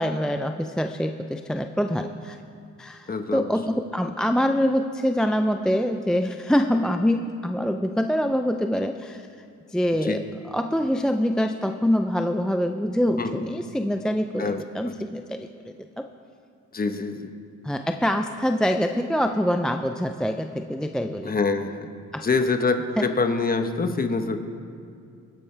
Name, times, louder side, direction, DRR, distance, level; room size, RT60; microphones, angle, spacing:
voice 1, 0.0-2.4 2.8-9.3 9.7-10.2 10.5-15.5 16.0-16.1 17.6-21.3 22.1-22.3, equal, ahead, 6 dB, 0.4 m, -25 dB
voice 2, 3.1-3.6 10.0-10.2 13.1-13.4 14.4-14.6 14.8-14.9 16.7-17.3 21.2-21.9 22.2-24.4, left 4 dB, 30° left, 7 dB, 1.1 m, -25 dB
21.0 x 10.5 x 3.3 m, 2.4 s
cardioid pair, 90°, 30 cm